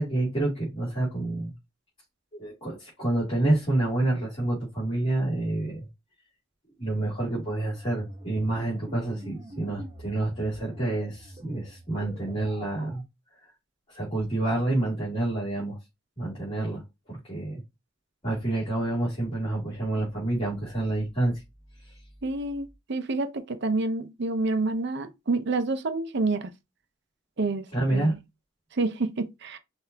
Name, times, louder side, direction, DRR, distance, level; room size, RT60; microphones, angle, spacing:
voice 1, 0.0-1.5 2.3-5.9 6.8-13.0 13.9-15.8 16.2-16.8 17.1-17.6 18.2-21.4 21.9-22.0 27.7-28.1, right 2 dB, 30° left, 2.6 m, -28 dB
sound 1, 7.4-13.0, right 1 dB, 25° right, 1.1 m, -45 dB
voice 2, 22.2-26.5 27.4-28.2 28.7-29.6, right 3 dB, 60° right, 0.6 m, -28 dB
5.9 x 2.6 x 2.8 m
head